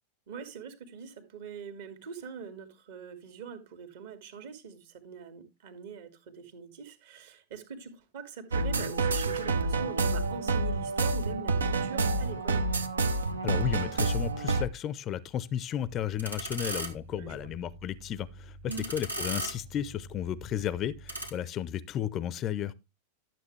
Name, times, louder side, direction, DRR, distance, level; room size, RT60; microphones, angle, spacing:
voice 1, 0.3-12.7 17.1-17.4 18.7-18.9, right 6 dB, 55° right, 2.0 m, -43 dB
sound 1, 8.5-14.7, right 3 dB, 70° right, 0.8 m, -28 dB
voice 2, 13.4-18.6 18.9-22.7, left 10 dB, 30° left, 0.5 m, -33 dB
sound 2, 15.9-21.3, right 1 dB, 90° right, 2.0 m, -39 dB
12.0 x 7.6 x 3.2 m
figure-of-eight pair, 90°, 0 cm